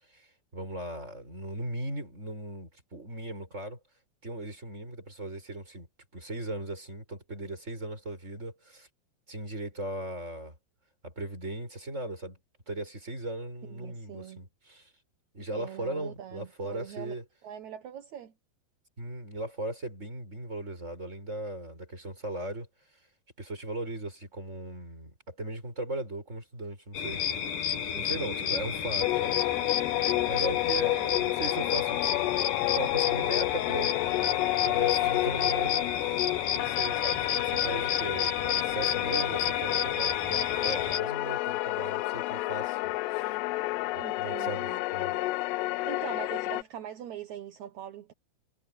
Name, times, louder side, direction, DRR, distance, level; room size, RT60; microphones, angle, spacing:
voice 1, 0.5-3.8 4.2-5.9 6.1-8.9 9.3-10.6 11.0-12.4 12.7-14.9 15.3-17.2 19.0-22.7 23.4-27.2 27.9-29.4 30.2-32.3 32.7-33.9 34.6-35.9 36.5-43.4 43.9-45.1, right 1 dB, 15° right, 7.5 m, -38 dB
voice 2, 13.7-14.4 15.5-17.1 17.4-18.3 27.9-28.6 44.0-44.8 45.9-48.1, right 10 dB, 60° right, 2.1 m, -42 dB
sound 1, 26.9-41.0, left 8 dB, 55° left, 3.2 m, -31 dB
sound 2, 29.0-46.6, left 20 dB, 85° left, 2.7 m, -30 dB
omnidirectional pair, 4.8 m